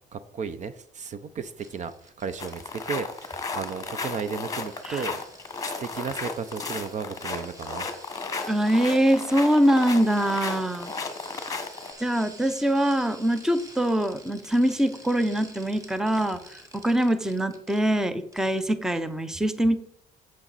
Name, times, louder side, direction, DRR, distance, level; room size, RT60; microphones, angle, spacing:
voice 1, 0.1-5.2 5.6-7.9, right 6 dB, 45° right, 13 dB, 0.7 m, -34 dB
sound 1, 1.6-18.1 18.3-18.6 19.0-19.1, right 1 dB, 20° right, 1.7 m, -49 dB
sound 2, 2.4-11.9, left 4 dB, 20° left, 1.3 m, -34 dB
voice 2, 8.5-10.9 12.0-19.8, right 1 dB, 5° right, 11 dB, 0.7 m, -23 dB
8.9 x 7.6 x 4.1 m, 0.67 s
cardioid pair, 110°, 17 cm